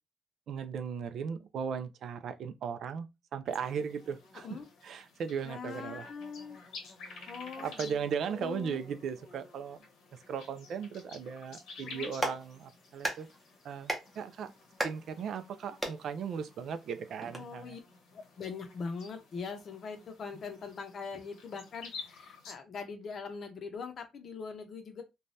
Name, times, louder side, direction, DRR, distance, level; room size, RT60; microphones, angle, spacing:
voice 1, 0.5-4.5 4.8-6.1 7.0-7.3 7.6-9.8 10.1-13.3 13.6-14.5 14.8-17.8, right 7 dB, 55° right, 0.4 m, -37 dB
sound 1, 3.5-22.6, left 4 dB, 90° left, 1.0 m, -52 dB
voice 2, 4.3-4.7 5.4-6.6 7.3-8.0 8.3-8.8 11.8-12.1 17.4-17.8 18.1-25.0, left 5 dB, 45° left, 0.6 m, -42 dB
Clapping, 11.9-17.4, right 1 dB, 5° right, 0.7 m, -39 dB
3.2 x 2.2 x 2.5 m
cardioid pair, 160°, 0 cm